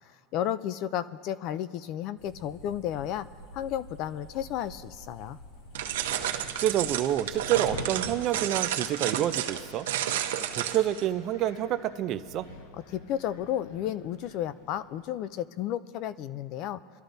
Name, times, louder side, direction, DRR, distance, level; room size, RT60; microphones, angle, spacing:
voice 1, 0.1-3.3 3.5-5.4 12.7-16.8, left 11 dB, 40° left, 16 dB, 0.4 m, -33 dB
sound 1, 2.2-7.8, right 1 dB, 60° left, 3.4 m, -49 dB
Wind, 5.5-15.1, left 2 dB, 85° left, 1.5 m, -47 dB
sound 2, 5.7-11.0, right 11 dB, 80° right, 0.9 m, -31 dB
voice 2, 6.6-9.9 10.5-12.5, right 12 dB, 35° right, 12 dB, 0.5 m, -28 dB
25.5 x 12.5 x 2.7 m, 2.5 s
supercardioid pair, 155°, 0 cm